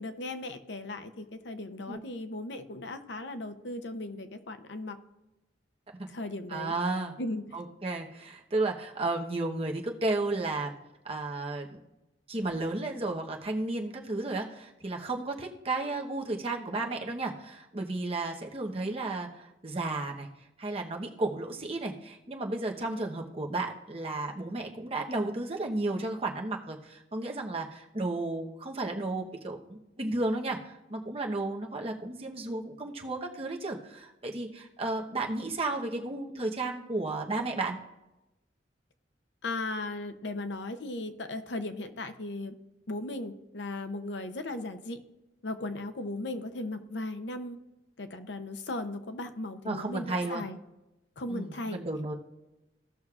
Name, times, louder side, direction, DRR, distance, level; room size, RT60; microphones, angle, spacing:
voice 1, 0.0-5.0 6.1-6.7 7.2-7.6 39.4-42.6 42.9-45.0 45.4-47.6 48.0-50.6 51.2-51.8, left 2 dB, 75° left, 9 dB, 0.7 m, -37 dB
voice 2, 6.5-7.1 7.5-10.7 11.0-11.8 12.3-20.3 20.6-37.8 49.6-50.4 51.3-52.1, right 2 dB, 30° right, 1 dB, 1.0 m, -33 dB
16.0 x 6.3 x 2.4 m, 0.98 s
head